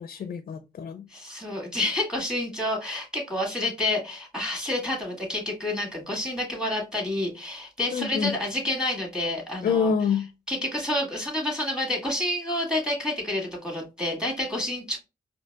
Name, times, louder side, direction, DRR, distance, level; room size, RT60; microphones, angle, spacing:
voice 1, 0.0-1.1 7.9-8.4 9.6-10.3, left 6 dB, 60° left, 0.4 m, -26 dB
voice 2, 1.1-9.9 10.5-15.0, left 1 dB, 5° right, 2.1 m, -29 dB
4.4 x 2.7 x 2.3 m
cardioid pair, 65°, 16 cm